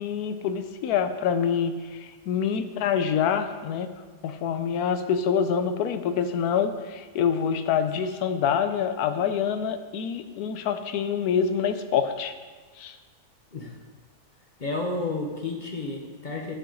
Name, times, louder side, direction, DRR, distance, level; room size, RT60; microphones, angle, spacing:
voice 1, 0.0-3.9 4.2-12.3 12.8-13.0, left 7 dB, 90° left, 9 dB, 1.1 m, -26 dB
voice 2, 14.6-16.5, left 2 dB, 40° left, 0 dB, 0.8 m, -31 dB
11.5 x 5.0 x 3.8 m, 1.4 s
omnidirectional pair, 1.6 m